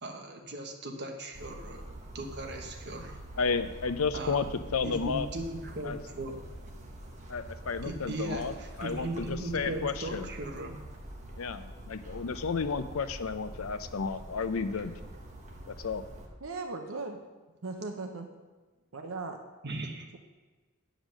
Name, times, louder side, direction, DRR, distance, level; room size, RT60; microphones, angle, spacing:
voice 1, 0.0-3.2 4.1-4.4 4.8-6.4 7.8-10.8 19.6-20.1, right 2 dB, 55° right, 2 dB, 1.3 m, -38 dB
sound 1, 1.3-16.3, right 1 dB, 35° right, 1.2 m, -45 dB
voice 2, 3.4-4.5 4.7-5.3 5.8-6.0 7.3-10.3 11.3-14.9 15.7-16.0, left 5 dB, 85° left, 11 dB, 0.6 m, -32 dB
voice 3, 16.4-17.2 17.6-18.3 18.9-19.4, right 3 dB, 70° right, 4 dB, 0.8 m, -37 dB
10.0 x 5.1 x 6.3 m, 1.2 s
head